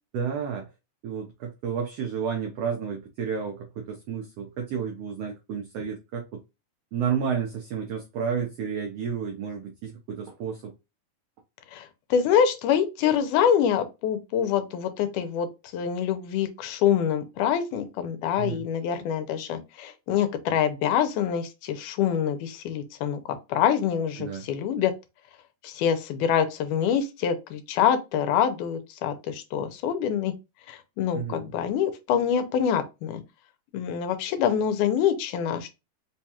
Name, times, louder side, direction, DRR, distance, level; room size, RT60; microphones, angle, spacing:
voice 1, 0.1-0.7 1.0-6.4 6.9-10.7 18.4-18.6 24.2-24.4 31.1-31.5, right 7 dB, 85° right, 1.3 m, -31 dB
voice 2, 11.7-15.5 15.7-24.9 25.6-30.3 30.7-33.2 33.7-35.7, left 8 dB, 85° left, 2.1 m, -25 dB
5.1 x 2.3 x 2.8 m
omnidirectional pair, 3.6 m